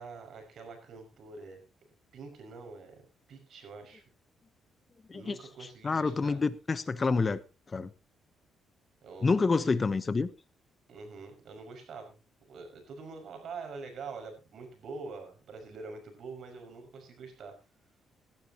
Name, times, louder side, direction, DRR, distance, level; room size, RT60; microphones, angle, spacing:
voice 1, 0.0-1.6 2.1-3.0 3.3-4.0 5.1-6.4 9.0-9.7 10.9-12.2 12.5-17.5, right 4 dB, 65° right, 5.9 m, -45 dB
voice 2, 5.8-7.4 7.7-7.9 9.2-10.3, left 4 dB, 30° left, 0.9 m, -27 dB
17.5 x 12.0 x 3.0 m
cardioid pair, 90°, 0 cm